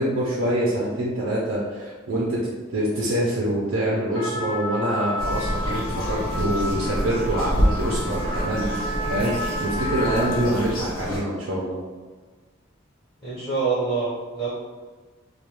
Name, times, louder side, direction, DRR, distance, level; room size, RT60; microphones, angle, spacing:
voice 1, 0.0-9.3 9.6-11.8, right 1 dB, 75° right, -5 dB, 0.5 m, -25 dB
Trumpet, 4.1-10.7, equal, 70° left, 1.1 m, -31 dB
sound 1, 5.2-11.2, equal, 85° left, 0.6 m, -27 dB
voice 2, 13.2-14.5, right 4 dB, 20° left, -12 dB, 0.7 m, -25 dB
2.3 x 2.3 x 2.9 m, 1.4 s
head